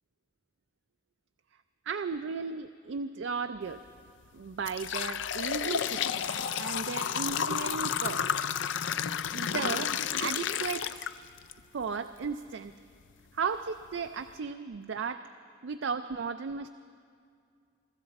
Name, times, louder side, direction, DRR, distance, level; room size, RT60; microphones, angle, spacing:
voice 1, 1.9-3.8 4.3-6.3 6.6-8.4 9.3-11.1 11.7-12.7 13.3-15.3 15.6-16.7, right 5 dB, 70° right, 8 dB, 0.4 m, -35 dB
sound 1, 3.7-3.9 4.4-11.5 12.0-12.1 12.9-13.0 13.5-13.6 14.1-14.3, left 8 dB, 70° left, 0.4 m, -31 dB
23.5 x 13.5 x 4.1 m, 2.3 s
head